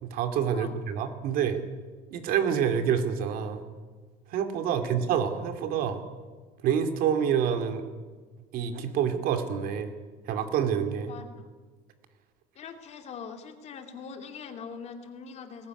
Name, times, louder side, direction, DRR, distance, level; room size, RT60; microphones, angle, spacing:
voice 1, 0.0-1.6 2.1-3.6 4.3-6.0 6.6-7.8 8.5-9.9 10.3-11.1, right 8 dB, 50° right, 7 dB, 2.6 m, -27 dB
voice 2, 11.1-11.5 12.6-15.7, left 6 dB, 35° left, 6 dB, 2.4 m, -42 dB
20.5 x 19.0 x 9.7 m, 1.4 s
cardioid pair, 170°, 19 cm